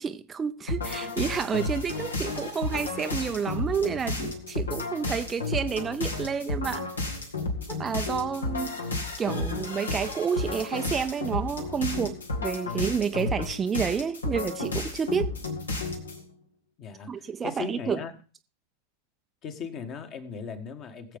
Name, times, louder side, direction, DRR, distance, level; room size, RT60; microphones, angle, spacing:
voice 1, 0.0-6.9 7.7-15.4 17.1-18.0, right 6 dB, 20° right, 0.5 m, -30 dB
sound 1, 0.7-16.2, left 2 dB, 75° left, 1.9 m, -32 dB
voice 2, 16.8-18.1 19.4-21.2, left 6 dB, 35° left, 1.6 m, -38 dB
20.5 x 7.6 x 3.7 m
figure-of-eight pair, 90°, 0 cm